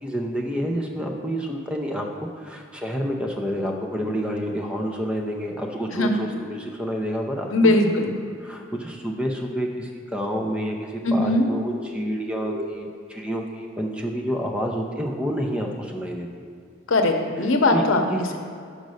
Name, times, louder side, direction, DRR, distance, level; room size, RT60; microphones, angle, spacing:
voice 1, 0.0-2.1 2.3-7.5 8.4-16.4 17.7-18.4, equal, 5° right, 1 dB, 0.5 m, -29 dB
voice 2, 7.5-8.2 11.0-11.5 16.9-18.0, left 2 dB, 80° left, 4 dB, 0.8 m, -20 dB
sound 1, 11.0-13.9 14.8-15.3, left 2 dB, 85° right, 1.4 m, -39 dB
5.2 x 5.2 x 6.3 m, 2.4 s
head